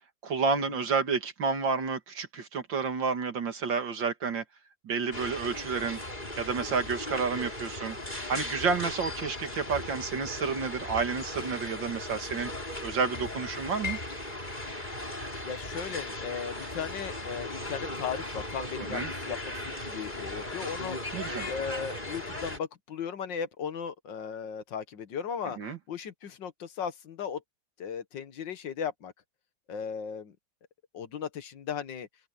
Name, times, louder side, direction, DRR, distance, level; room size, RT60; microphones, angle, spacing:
voice 1, 0.2-4.4 4.8-6.0 6.4-8.0 8.3-12.5 12.8-14.0 18.9-19.1 21.1-21.5 25.6-25.8, right 5 dB, 70° right, 2.6 m, -30 dB
sound 1, 5.1-22.6, left 1 dB, 20° left, 4.9 m, -37 dB
voice 2, 15.4-19.4 19.7-21.2 21.5-25.6 25.9-27.4 27.8-29.1 29.7-30.4 30.9-32.1, left 7 dB, 70° left, 1.9 m, -36 dB
open air
omnidirectional pair, 2.1 m